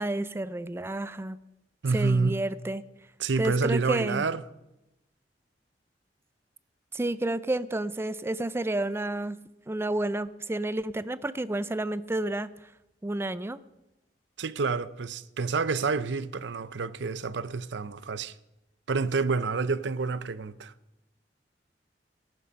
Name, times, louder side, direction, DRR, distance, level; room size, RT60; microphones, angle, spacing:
voice 1, 0.0-1.4 1.9-2.8 3.4-4.2 6.9-9.4 9.7-12.5 13.0-13.6, right 2 dB, 15° right, 0.4 m, -30 dB
voice 2, 1.8-2.4 3.2-4.4 14.4-18.4 18.9-20.7, right 4 dB, 75° right, 0.6 m, -28 dB
14.0 x 11.0 x 5.2 m
head